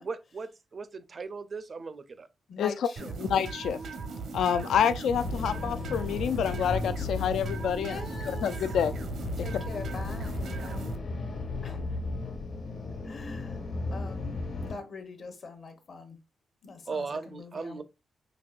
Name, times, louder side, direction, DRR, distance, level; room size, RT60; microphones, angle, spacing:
voice 1, 0.0-2.3 16.9-17.8, right 4 dB, 35° right, 0.4 m, -37 dB
voice 2, 2.5-3.1 7.7-8.5 9.4-10.9 11.6-12.0 13.0-13.6 13.9-14.4 14.7-16.2 16.6-17.8, left 4 dB, 50° left, 0.8 m, -43 dB
sound 1, 3.0-11.0, right 4 dB, 70° right, 0.7 m, -38 dB
voice 3, 3.2-3.8 4.3-8.0 8.4-8.9, left 8 dB, 90° left, 0.3 m, -27 dB
sound 2, 5.1-14.7, left 3 dB, 65° left, 1.2 m, -35 dB
5.2 x 2.7 x 2.3 m
wide cardioid pair, 135°, 0 cm